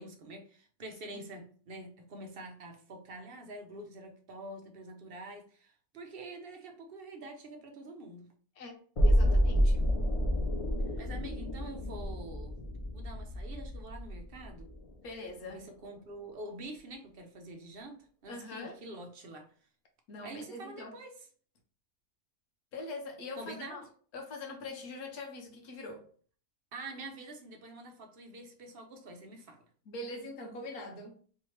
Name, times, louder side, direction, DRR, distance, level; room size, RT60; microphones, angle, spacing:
voice 1, 0.0-8.3 11.0-12.6 12.9-14.7 15.5-19.5 20.2-21.1 23.4-23.8 26.7-29.6, right 2 dB, 50° right, 0.8 m, -46 dB
sound 1, 9.0-14.9 15.3-15.4, equal, 50° left, 0.4 m, -29 dB
voice 2, 9.1-10.0 15.0-15.6 18.3-18.8 20.1-21.0 22.7-23.8 24.1-26.1 29.9-31.2, left 2 dB, 80° left, 1.4 m, -43 dB
3.4 x 3.1 x 3.1 m
omnidirectional pair, 1.5 m